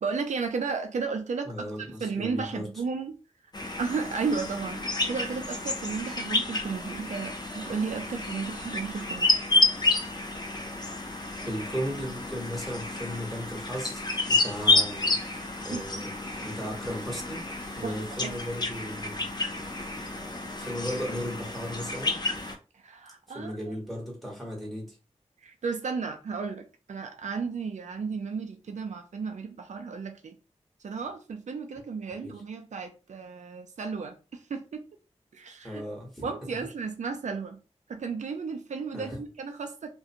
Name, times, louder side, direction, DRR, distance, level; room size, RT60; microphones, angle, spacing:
voice 1, 0.0-3.1 3.8-9.3 15.7-16.0 17.8-18.3 22.7-23.7 25.4-30.3 30.8-34.8 35.3-35.8 36.2-37.6 37.9-39.9, right 5 dB, 90° right, 0.4 m, -34 dB
voice 2, 1.4-2.7 11.4-15.2 15.6-16.1 16.4-17.4 17.8-19.2 20.6-22.2 23.3-25.0 32.1-32.3 35.6-36.3 38.9-39.2, equal, ahead, 1.2 m, -36 dB
sound 1, 3.5-22.6, left 2 dB, 35° left, 0.4 m, -30 dB
2.5 x 2.2 x 2.8 m
wide cardioid pair, 85°, 12 cm